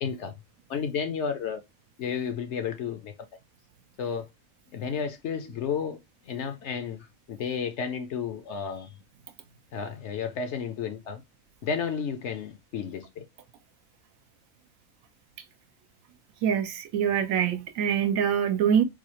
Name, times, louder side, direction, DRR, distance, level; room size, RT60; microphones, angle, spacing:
voice 1, 0.0-0.3 0.7-1.6 2.0-3.1 4.0-4.2 4.7-6.0 6.3-7.0 7.3-8.9 9.7-11.2 11.6-13.2, left 6 dB, 65° left, 0.8 m, -32 dB
voice 2, 16.4-18.8, right 8 dB, 75° right, 1.0 m, -24 dB
4.2 x 2.3 x 2.9 m
omnidirectional pair, 1.4 m